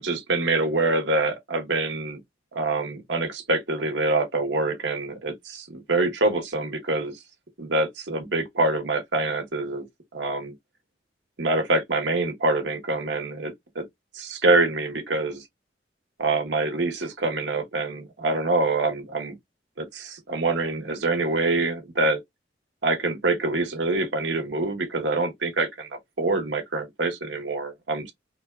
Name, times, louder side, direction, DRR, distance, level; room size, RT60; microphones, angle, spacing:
voice 1, 0.0-2.2 2.5-7.2 7.6-9.9 10.1-10.5 11.4-13.9 14.1-15.5 16.2-19.4 19.8-22.2 22.8-28.1, right 2 dB, 80° right, 1.1 m, -25 dB
3.8 x 2.3 x 2.3 m
head